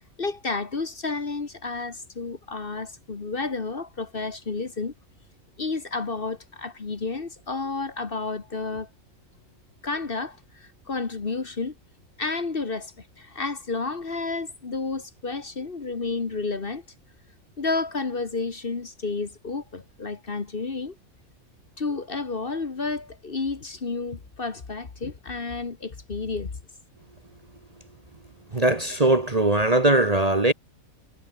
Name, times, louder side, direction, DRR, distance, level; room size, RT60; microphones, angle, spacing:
voice 1, 0.2-4.9 5.6-8.9 9.8-11.7 12.2-16.8 17.6-21.0 21.8-26.5 28.5-28.6, left 3 dB, 40° left, 1.6 m, -31 dB
voice 2, 28.5-30.5, right 2 dB, 25° right, 1.3 m, -20 dB
omnidirectional pair, 1.6 m